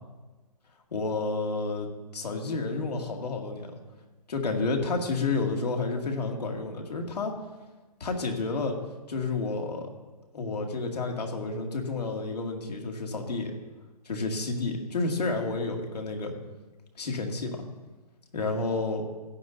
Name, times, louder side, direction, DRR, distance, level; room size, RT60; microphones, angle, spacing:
voice 1, 0.9-3.7 4.3-7.3 8.0-8.8 9.1-9.9 10.3-13.5 14.1-16.3 17.0-17.6 18.3-19.0, left 3 dB, 80° left, 2 dB, 2.3 m, -30 dB
16.5 x 10.5 x 2.7 m, 1.2 s
hypercardioid pair, 170°, 20 cm